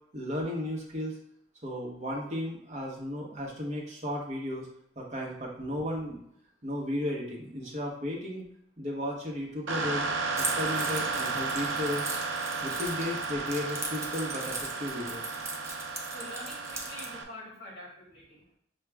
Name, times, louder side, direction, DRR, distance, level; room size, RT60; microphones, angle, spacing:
voice 1, 0.1-1.2 1.6-4.7 5.0-6.2 6.6-8.4 8.8-10.1 10.4-12.1 12.6-15.2, left 1 dB, 35° right, -2 dB, 0.9 m, -34 dB
sound 1, 9.7-17.2, right 4 dB, 80° right, 0.5 m, -33 dB
Keys jangling, 10.3-17.1, right 2 dB, 15° right, 0.4 m, -39 dB
voice 2, 16.1-18.6, left 1 dB, 55° left, -4 dB, 1.8 m, -46 dB
6.0 x 2.2 x 3.3 m, 0.71 s
head